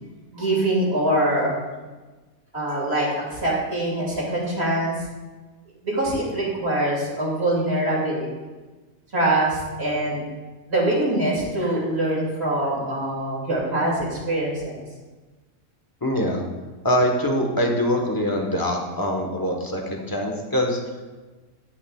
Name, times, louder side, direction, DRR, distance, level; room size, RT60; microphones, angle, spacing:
voice 1, 0.3-1.5 2.5-4.9 5.8-8.3 9.1-10.2 10.7-14.8, right 1 dB, 45° right, -4 dB, 2.6 m, -24 dB
voice 2, 16.0-16.4 16.8-20.8, equal, 15° left, 1 dB, 1.0 m, -23 dB
11.0 x 9.7 x 2.3 m, 1.3 s
omnidirectional pair, 1.5 m